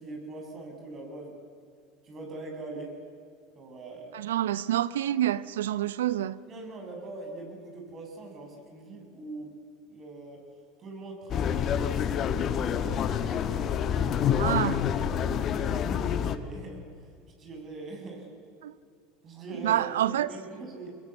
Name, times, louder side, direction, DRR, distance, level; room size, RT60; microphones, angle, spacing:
voice 1, 0.0-1.4 2.0-2.9 3.5-4.1 6.5-9.5 9.9-10.4 10.8-14.6 15.0-16.8 17.4-18.3 19.2-19.8 20.1-20.9, right 3 dB, 35° right, 7.8 m, -42 dB
voice 2, 4.1-6.4 14.4-14.8 18.6-18.7 19.6-20.3, right 12 dB, 75° right, 0.7 m, -27 dB
sound 1, 11.3-16.4, left 8 dB, 40° left, 1.5 m, -27 dB
25.5 x 21.5 x 8.3 m
hypercardioid pair, 80°, 0 cm